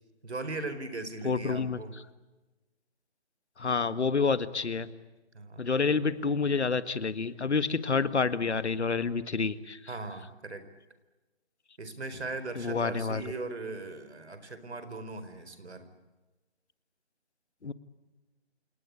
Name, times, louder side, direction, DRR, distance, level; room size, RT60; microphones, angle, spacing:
voice 1, 0.2-2.0 5.3-5.7 9.9-10.7 11.8-15.9, right 3 dB, 75° right, 11 dB, 4.5 m, -39 dB
voice 2, 1.2-1.8 3.6-4.9 5.6-9.8 12.6-13.2 17.6-17.7, left 4 dB, 90° left, 13 dB, 1.8 m, -28 dB
28.5 x 19.0 x 8.6 m, 1.1 s
hypercardioid pair, 180°, 33 cm